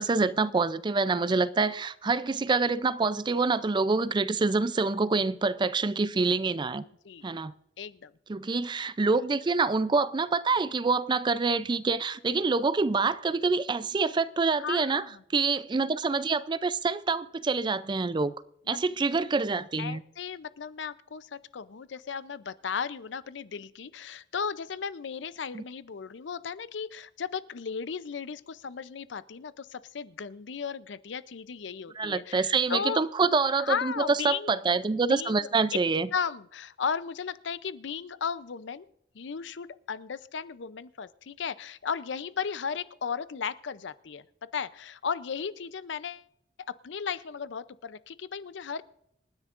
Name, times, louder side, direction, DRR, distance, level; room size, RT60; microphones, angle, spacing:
voice 1, 0.0-6.8 7.2-7.5 8.3-15.0 15.3-18.3 18.7-20.0 25.5-25.6 32.0-36.1, right 4 dB, 25° right, 0.4 m, -26 dB
voice 2, 7.8-8.1 14.6-15.2 18.7-18.8 19.8-33.0 33.6-34.5 35.1-35.5 36.1-38.9 39.1-46.3 46.7-48.8, left 6 dB, 70° left, 0.5 m, -35 dB
27.0 x 10.0 x 2.5 m
head